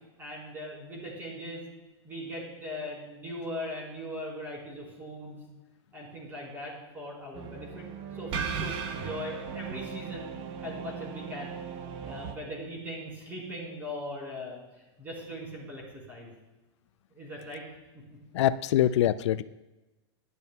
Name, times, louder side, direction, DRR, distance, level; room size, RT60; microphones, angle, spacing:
voice 1, 0.2-1.6 2.0-5.4 5.9-7.8 8.1-10.3 10.6-11.6 12.0-14.6 15.0-16.3 17.1-17.6, equal, 15° right, -4 dB, 4.0 m, -39 dB
sound 1, 7.3-12.3, right 6 dB, 35° right, 0.7 m, -37 dB
voice 2, 18.3-19.4, left 12 dB, 85° left, 14 dB, 0.4 m, -24 dB
17.0 x 11.0 x 2.2 m, 1.1 s
supercardioid pair, 160°, 15 cm